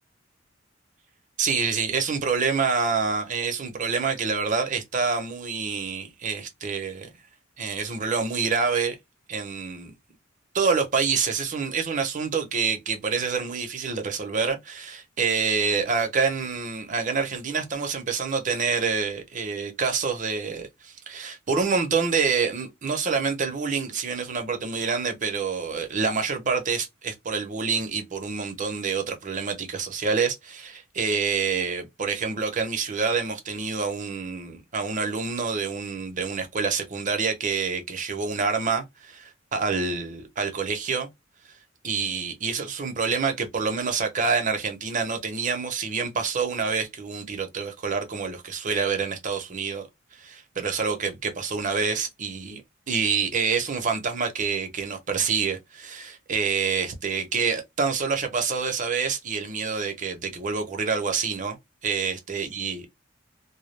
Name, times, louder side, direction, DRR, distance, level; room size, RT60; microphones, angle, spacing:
voice 1, 1.4-7.1 7.6-8.9 9.3-9.9 10.5-41.1 41.8-49.9 50.2-52.6 52.9-61.6 61.8-62.9, right 5 dB, 40° right, 0.6 m, -27 dB
2.2 x 2.0 x 3.0 m
head